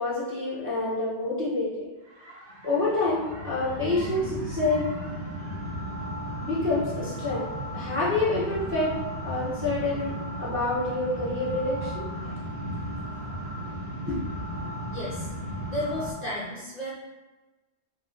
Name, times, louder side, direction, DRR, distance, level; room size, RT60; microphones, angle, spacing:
voice 1, 0.0-1.9 2.6-4.8 6.4-7.4 7.7-9.0 9.2-12.4 14.1-14.2, left 2 dB, 10° right, -9 dB, 0.8 m, -27 dB
sound 1, 2.1-16.1, equal, 70° right, 1.1 m, -35 dB
voice 2, 14.9-15.3 15.7-16.9, left 1 dB, 40° left, -7 dB, 0.7 m, -33 dB
3.0 x 2.9 x 3.8 m, 1.1 s
omnidirectional pair, 1.2 m